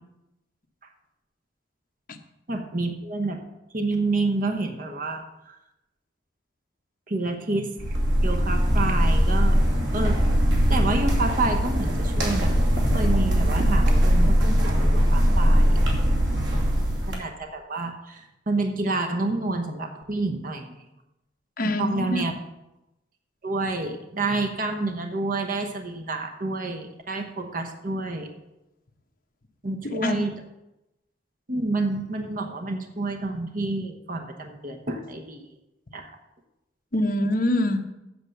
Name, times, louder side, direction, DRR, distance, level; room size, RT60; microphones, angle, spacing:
voice 1, 2.5-3.4 3.7-5.5 7.1-8.0 8.2-9.6 9.9-10.2 10.7-12.6 12.9-15.8 17.1-20.8 21.6-22.3 23.4-28.3 29.6-30.3 31.5-35.5 35.9-36.1, right 2 dB, 50° right, 3 dB, 1.1 m, -29 dB
sound 1, 7.8-17.1, equal, 85° right, 2.7 m, -21 dB
voice 2, 21.6-22.2 29.8-30.2 36.9-37.8, left 1 dB, 50° left, 4 dB, 1.1 m, -24 dB
8.0 x 7.8 x 6.7 m, 0.93 s
head